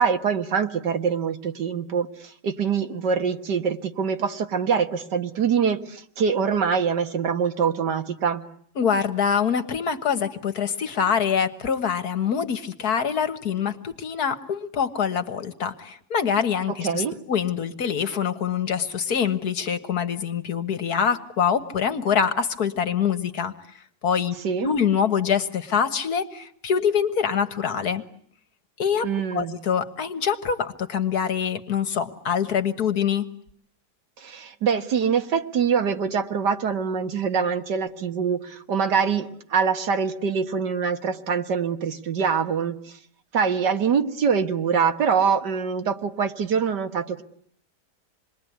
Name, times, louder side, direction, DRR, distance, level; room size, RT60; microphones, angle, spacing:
voice 1, 0.0-8.4 16.8-17.2 24.4-24.7 29.0-29.5 34.2-42.8 43.3-47.2, right 6 dB, 80° right, 7 dB, 2.1 m, -24 dB
voice 2, 8.8-23.5 24.0-24.4 24.6-28.0 28.8-33.3, left 7 dB, 65° left, 10 dB, 2.0 m, -25 dB
28.0 x 21.5 x 9.4 m, 0.65 s
omnidirectional pair, 1.8 m